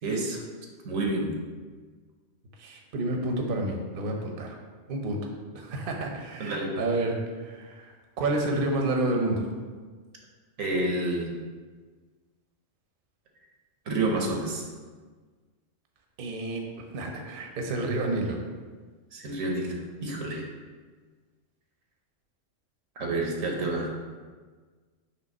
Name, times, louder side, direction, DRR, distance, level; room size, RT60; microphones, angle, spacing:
voice 1, 0.0-0.4 0.8-1.4 6.4-6.7 10.6-11.3 13.9-14.6 19.1-20.4 23.0-23.9, right 2 dB, 90° right, 0 dB, 1.4 m, -29 dB
voice 2, 2.6-4.6 4.9-5.2 5.5-9.5 16.2-18.4, right 2 dB, 50° right, 2 dB, 0.8 m, -30 dB
5.4 x 3.3 x 5.3 m, 1.5 s
omnidirectional pair, 1.3 m